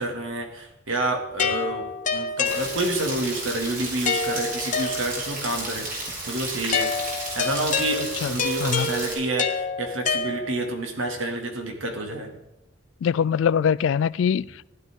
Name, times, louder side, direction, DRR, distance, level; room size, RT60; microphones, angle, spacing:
voice 1, 0.0-1.9 2.1-6.9 7.3-12.3, right 1 dB, 80° right, 2.4 m, -29 dB
sound 1, 1.4-3.2 4.1-5.5 6.7-10.8, left 4 dB, 40° left, 1.1 m, -28 dB
Rain, 2.5-9.1, right 2 dB, 45° right, 4.6 m, -33 dB
voice 2, 13.0-14.6, left 7 dB, 75° left, 0.3 m, -23 dB
16.0 x 11.5 x 3.7 m
head